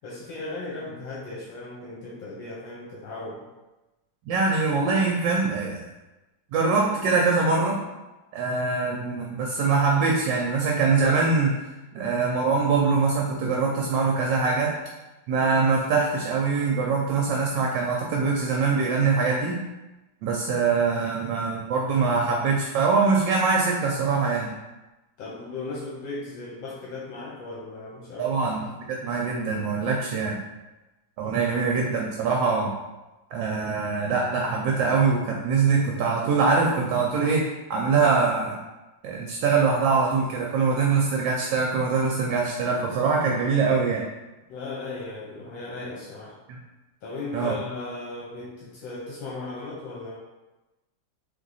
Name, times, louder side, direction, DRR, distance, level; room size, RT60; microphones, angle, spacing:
voice 1, 0.0-3.5 25.2-28.3 31.2-31.8 44.5-46.4 47.0-50.2, left 3 dB, 75° left, -5 dB, 1.5 m, -37 dB
voice 2, 4.3-5.8 6.5-7.8 8.3-11.6 11.9-14.7 15.3-19.6 20.2-24.5 28.2-30.4 31.2-32.7 33.3-38.6 39.0-44.1 46.5-46.6 47.3-47.5, right 4 dB, 75° right, 0 dB, 1.2 m, -23 dB
3.6 x 3.1 x 4.0 m, 1.1 s
omnidirectional pair, 2.1 m